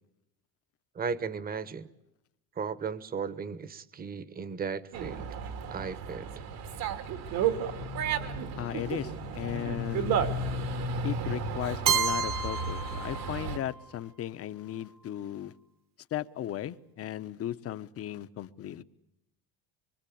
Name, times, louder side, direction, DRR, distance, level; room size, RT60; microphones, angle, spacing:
voice 1, 0.9-1.9 2.6-5.2 5.7-6.4, right 6 dB, 25° right, 1.1 m, -36 dB
Dog, 4.9-13.6, right 5 dB, 75° right, 2.9 m, -33 dB
voice 2, 8.6-10.3 11.0-15.5 16.1-18.8, left 12 dB, 40° left, 1.0 m, -36 dB
Keyboard (musical), 11.9-13.8, right 6 dB, 50° right, 1.4 m, -30 dB
25.5 x 24.0 x 8.6 m
cardioid pair, 150°, 36 cm